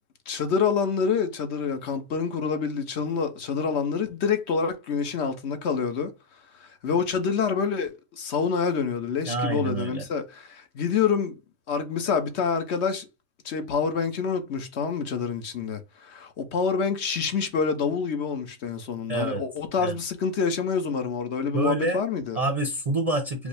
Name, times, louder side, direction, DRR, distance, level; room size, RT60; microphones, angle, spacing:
voice 1, 0.3-6.1 6.6-11.4 11.7-13.1 13.4-22.4, left 6 dB, 55° left, 1.1 m, -27 dB
voice 2, 9.3-10.1 19.1-19.4 19.8-20.0 21.5-22.1 22.3-23.5, right 2 dB, 35° right, 0.7 m, -27 dB
5.2 x 2.0 x 4.8 m
omnidirectional pair, 1.5 m